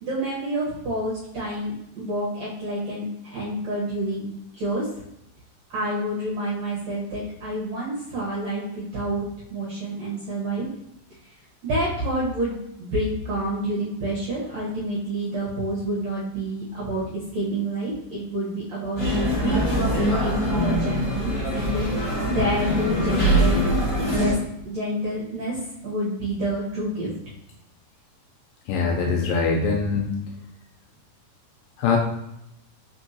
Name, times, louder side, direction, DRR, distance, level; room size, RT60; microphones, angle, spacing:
voice 1, 0.0-4.2 4.6-4.9 5.7-9.3 9.5-10.7 11.6-17.0 17.3-23.6 24.1-24.3 24.7-25.6 25.8-27.1, right 1 dB, 70° right, -6 dB, 1.6 m, -28 dB
sound 1, 19.0-24.3, equal, 50° left, 0.9 m, -23 dB
voice 2, 28.7-30.0 31.8-32.0, left 5 dB, 80° left, 1 dB, 2.1 m, -22 dB
5.2 x 3.5 x 2.7 m, 0.83 s
omnidirectional pair, 4.3 m